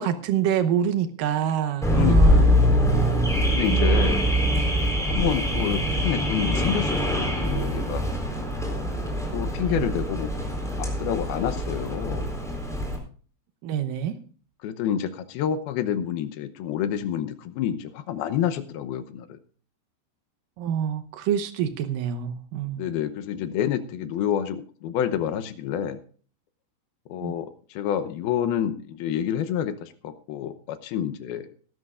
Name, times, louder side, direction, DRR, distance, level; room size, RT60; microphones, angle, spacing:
voice 1, 0.0-2.5 3.6-3.8 9.7-9.9 13.6-14.1 20.6-22.9 27.2-27.3, right 9 dB, 80° right, 8 dB, 2.0 m, -26 dB
Car / Alarm, 1.8-13.0, equal, ahead, 3.2 m, -23 dB
voice 2, 1.9-3.2 3.5-4.2 5.0-8.0 8.6-10.4 10.8-12.3 14.6-19.4 22.7-26.0 27.1-31.4, left 9 dB, 75° left, 10 dB, 2.4 m, -29 dB
20.0 x 12.5 x 2.5 m, 0.41 s
omnidirectional pair, 5.1 m